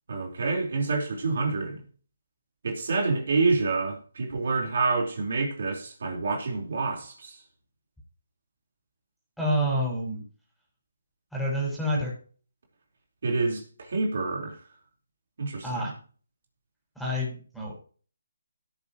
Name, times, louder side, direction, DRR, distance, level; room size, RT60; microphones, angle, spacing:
voice 1, 0.1-1.8 2.6-7.4 13.2-14.6 15.4-15.9, right 3 dB, 55° right, 4.5 m, -27 dB
voice 2, 9.4-10.2 11.3-12.1 15.6-15.9 16.9-17.7, equal, ahead, 6.3 m, -28 dB
17.5 x 8.7 x 3.1 m
hypercardioid pair, 165°, 0 cm